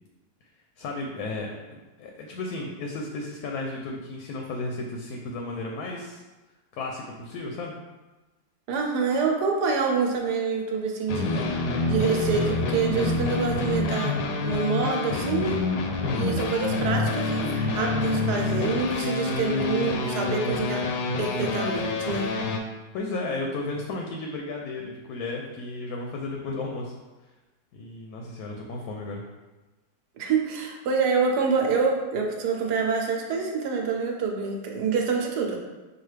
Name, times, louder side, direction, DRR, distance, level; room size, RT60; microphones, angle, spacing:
voice 1, 0.8-6.2 6.7-7.7 16.0-16.3 22.9-26.9 27.7-29.2, left 2 dB, 70° left, 1 dB, 1.0 m, -34 dB
voice 2, 8.7-11.5 11.9-15.6 16.1-20.8 21.2-22.3 30.2-35.6, right 5 dB, 75° right, 1 dB, 1.2 m, -26 dB
sound 1, 11.1-22.6, left 3 dB, 90° left, 1.2 m, -27 dB
5.9 x 2.4 x 3.2 m, 1.2 s
omnidirectional pair, 1.8 m